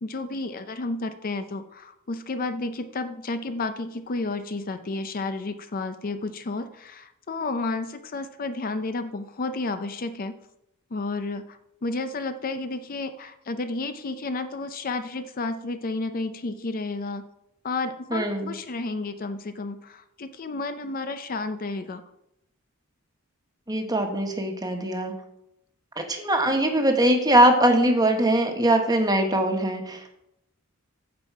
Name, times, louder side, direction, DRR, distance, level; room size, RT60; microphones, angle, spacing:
voice 1, 0.0-10.4 10.9-17.2 17.6-22.0, left 3 dB, 40° left, 10 dB, 0.5 m, -31 dB
voice 2, 18.1-18.5 23.7-25.1 26.0-30.1, right 1 dB, 20° right, 4 dB, 1.3 m, -21 dB
14.5 x 5.5 x 4.7 m, 0.84 s
head